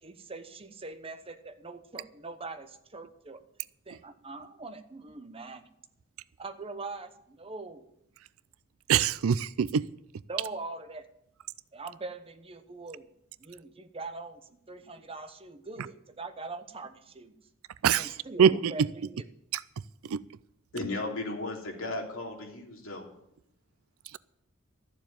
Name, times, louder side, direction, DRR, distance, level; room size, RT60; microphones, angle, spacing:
voice 1, 0.0-3.4 3.9-5.6 6.4-7.8 10.3-11.1 11.7-13.1 13.4-17.4 18.0-19.3, right 3 dB, 25° right, 8 dB, 1.0 m, -42 dB
voice 2, 8.9-9.8 17.8-18.7 19.5-19.6 20.1-20.2, right 7 dB, 85° right, 18 dB, 0.4 m, -24 dB
voice 3, 20.7-23.0, left 2 dB, 75° left, 0 dB, 3.0 m, -35 dB
13.0 x 7.3 x 9.0 m, 0.77 s
head